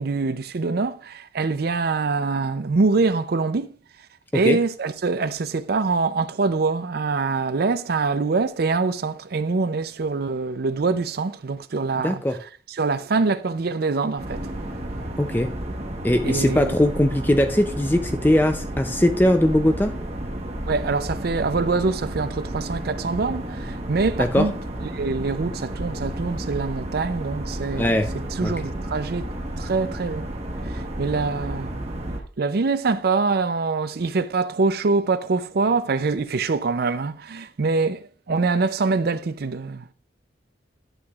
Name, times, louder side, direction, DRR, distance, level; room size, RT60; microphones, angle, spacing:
voice 1, 0.0-3.8 4.3-14.5 16.2-16.8 20.7-24.5 24.8-29.2 29.6-30.3 30.6-31.8 32.4-39.9, right 4 dB, 55° right, 0.5 m, -24 dB
voice 2, 12.0-12.4 15.2-15.5 16.0-19.9 24.2-24.5 27.8-28.1 28.4-28.5, left 1 dB, 10° left, 0.4 m, -20 dB
sound 1, 14.2-32.2, right 1 dB, 35° right, 1.2 m, -32 dB
11.0 x 7.9 x 2.4 m
head